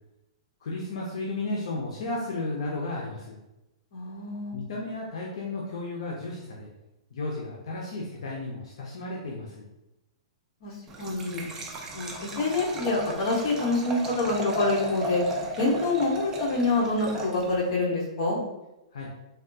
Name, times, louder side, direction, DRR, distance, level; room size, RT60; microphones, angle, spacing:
voice 1, 0.6-3.4 4.5-6.7 7.1-9.7 18.9-19.1, left 2 dB, 75° left, -2 dB, 0.6 m, -33 dB
voice 2, 3.9-4.6 10.6-11.4 11.9-15.2 15.6-18.4, left 2 dB, 50° left, -2 dB, 0.9 m, -26 dB
Liquid, 10.9-17.7, right 1 dB, 15° right, 0.4 m, -35 dB
3.4 x 2.3 x 2.6 m, 0.96 s
hypercardioid pair, 150°, 3 cm